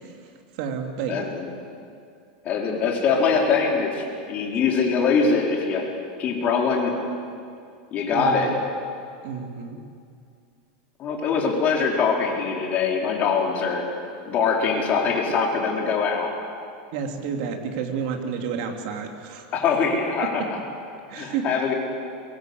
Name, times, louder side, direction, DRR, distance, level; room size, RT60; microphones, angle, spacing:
voice 1, 0.6-1.3 8.1-8.6 9.2-9.8 16.9-19.5 21.1-21.4, right 6 dB, 60° right, 3 dB, 3.3 m, -30 dB
voice 2, 1.1-1.5 2.4-5.9 6.2-7.0 7.9-8.5 11.0-13.9 14.3-16.3 19.5-20.6 21.2-21.7, left 5 dB, 35° left, 0 dB, 4.4 m, -23 dB
23.5 x 23.0 x 8.1 m, 2.4 s
supercardioid pair, 155°, 4 cm